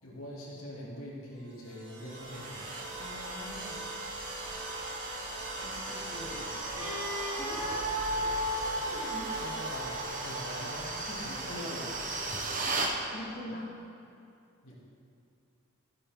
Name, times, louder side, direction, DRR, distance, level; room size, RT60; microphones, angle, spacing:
voice 1, 0.0-2.7 6.2-6.4 8.7-8.9 9.3-11.0 11.2-11.8 12.1-12.4 14.6-14.7, equal, 85° left, -5 dB, 2.7 m, -44 dB
sound 1, 1.4-12.7, right 1 dB, 60° right, 2.2 m, -43 dB
sound 2, 2.1-13.0, right 3 dB, 40° right, 1.0 m, -38 dB
voice 2, 3.0-3.8 5.6-6.4 6.8-6.9 7.4-7.7 8.8-9.4 11.1-11.3 13.1-13.8, left 1 dB, 35° left, -5 dB, 1.4 m, -44 dB
Wind instrument woodwind instrument, 6.8-10.8, equal, 80° right, 1.9 m, -35 dB
14.0 x 8.8 x 3.8 m, 2.6 s
head